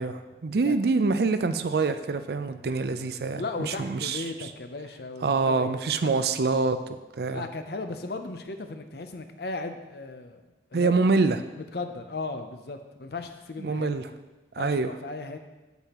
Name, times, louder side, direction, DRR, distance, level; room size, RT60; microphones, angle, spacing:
voice 1, 0.0-4.2 5.2-7.4 10.7-11.4 13.6-14.0 14.6-14.9, right 4 dB, 60° right, 10 dB, 0.4 m, -25 dB
voice 2, 3.3-5.7 6.0-6.3 7.3-10.4 10.7-10.9 11.6-13.9 14.6-15.4, left 3 dB, 60° left, 7 dB, 0.6 m, -36 dB
8.3 x 8.1 x 3.0 m, 1.2 s
head